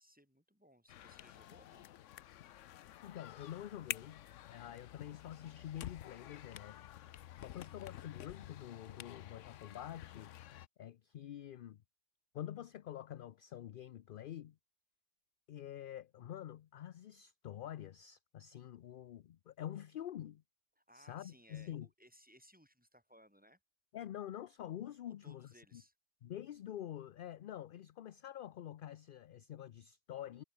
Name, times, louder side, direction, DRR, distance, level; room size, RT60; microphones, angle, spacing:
voice 1, 0.0-1.9 7.4-7.7 20.8-23.6 25.1-25.9, equal, 5° right, 5.7 m, -64 dB
sound 1, 0.9-10.7, left 12 dB, 80° left, 1.0 m, -50 dB
voice 2, 3.0-6.9 7.4-10.4 10.8-11.8 12.3-14.6 15.5-20.4 20.9-21.9 23.9-25.8 26.2-30.4, left 11 dB, 60° left, 0.6 m, -47 dB
omnidirectional pair, 1.3 m